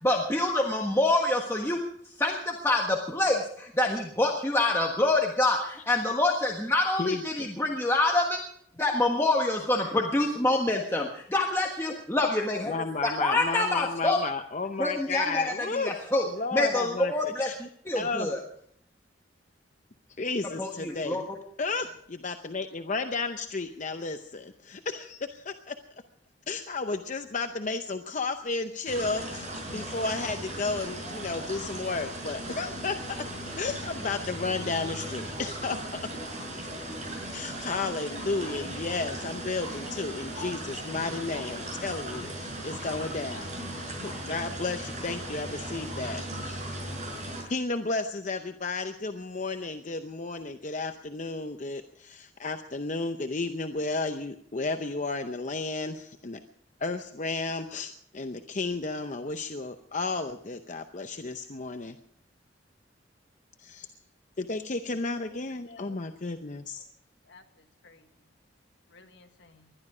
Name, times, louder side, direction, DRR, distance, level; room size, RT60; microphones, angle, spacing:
voice 1, 0.0-8.4 8.8-12.7 13.0-14.2 14.8-17.5 17.8-18.4 20.6-21.4, left 2 dB, 15° left, 0 dB, 1.4 m, -26 dB
voice 2, 7.0-7.5 12.7-15.9 16.4-17.1 17.4-17.5 17.9-18.3 20.2-21.3 21.6-25.8 26.5-33.2 33.6-36.0 37.3-43.5 43.9-46.7 47.5-56.4 56.8-62.0 63.6-63.9 64.4-66.9, left 3 dB, 40° left, 7 dB, 0.7 m, -33 dB
sound 1, 28.9-47.4, right 1 dB, 40° right, 6.2 m, -37 dB
voice 3, 65.6-66.0 67.3-68.1 68.9-69.7, left 3 dB, 65° left, 6 dB, 1.5 m, -54 dB
20.5 x 12.0 x 5.0 m, 0.67 s
head